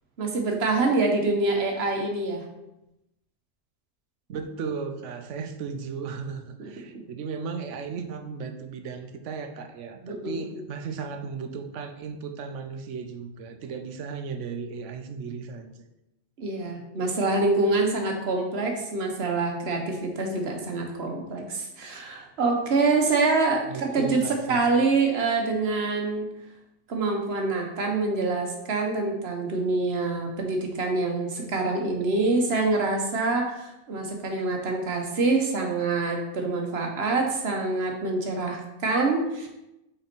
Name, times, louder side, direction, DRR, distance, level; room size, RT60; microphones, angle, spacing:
voice 1, 0.2-2.4 6.6-6.7 6.9-7.0 10.0-10.6 16.4-24.2 24.5-26.3 26.9-39.5, right 3 dB, 60° right, 2 dB, 1.3 m, -26 dB
voice 2, 4.3-15.8 23.7-24.9, right 5 dB, 75° right, 7 dB, 1.0 m, -35 dB
5.5 x 4.3 x 4.4 m, 0.90 s
omnidirectional pair, 1.3 m